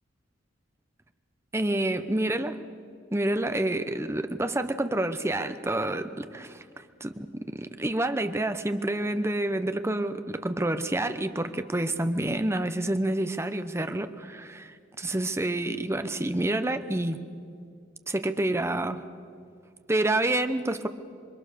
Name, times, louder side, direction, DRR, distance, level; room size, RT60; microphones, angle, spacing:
voice 1, 1.5-2.6 3.1-6.6 7.0-17.2 18.1-19.0 19.9-20.9, right 1 dB, 15° right, 9 dB, 0.9 m, -28 dB
27.5 x 23.5 x 6.8 m, 2.3 s
head